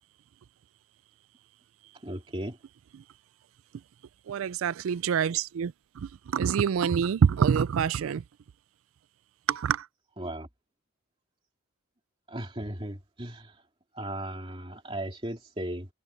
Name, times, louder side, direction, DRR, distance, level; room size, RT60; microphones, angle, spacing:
voice 1, 2.0-2.6 10.2-10.5 12.3-13.6 13.9-15.9, right 1 dB, 25° right, 2.7 m, -36 dB
voice 2, 4.3-8.2 9.5-9.9, right 7 dB, 75° right, 0.4 m, -26 dB
head